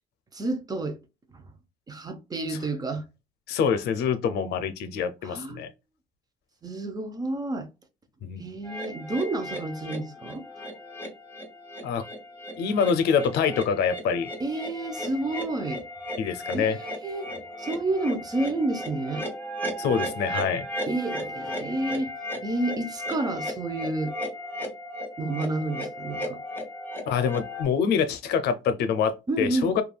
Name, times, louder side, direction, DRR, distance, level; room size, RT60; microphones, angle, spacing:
voice 1, 0.3-1.0 1.3-1.5 1.9-3.0 5.2-5.7 6.6-7.7 8.4-10.4 14.4-15.8 16.5-16.7 17.0-17.3 17.6-19.3 20.9-22.1 22.4-24.1 25.2-26.4 29.3-29.8, right 2 dB, 20° right, 0.6 m, -30 dB
voice 2, 3.5-5.7 8.2-8.4 11.8-12.0 12.6-14.3 16.2-16.8 19.8-20.7 27.1-29.8, left 6 dB, 75° left, 0.5 m, -25 dB
sound 1, 8.6-27.6, equal, 10° left, 1.2 m, -36 dB
3.2 x 2.3 x 2.2 m
cardioid pair, 110°, 17 cm